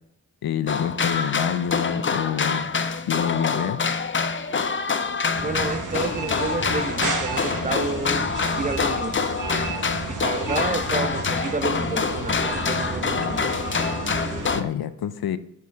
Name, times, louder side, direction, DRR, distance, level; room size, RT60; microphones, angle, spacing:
voice 1, 0.4-2.7 3.1-3.8 14.5-15.4, left 9 dB, 85° left, 0.5 m, -27 dB
sound 1, 0.7-14.6, left 5 dB, 35° left, 0.5 m, -26 dB
sound 2, 3.3-4.9 5.2-14.7, equal, 5° right, 2.5 m, -43 dB
sound 3, 5.3-14.5, right 3 dB, 55° right, 1.2 m, -32 dB
voice 2, 5.4-9.2 10.1-13.4, right 3 dB, 20° right, 0.6 m, -30 dB
7.0 x 4.8 x 3.3 m
cardioid pair, 60°, 36 cm